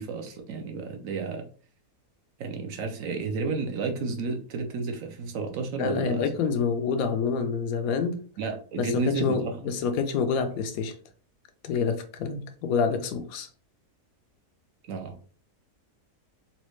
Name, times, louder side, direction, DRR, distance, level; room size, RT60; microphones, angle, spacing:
voice 1, 0.0-1.4 2.4-6.2 8.4-9.6 14.9-15.2, right 4 dB, 65° right, 4 dB, 1.0 m, -31 dB
voice 2, 5.8-8.2 8.8-11.0 11.6-13.5, left 5 dB, 70° left, 8 dB, 1.0 m, -27 dB
4.1 x 2.3 x 3.0 m, 0.41 s
omnidirectional pair, 1.7 m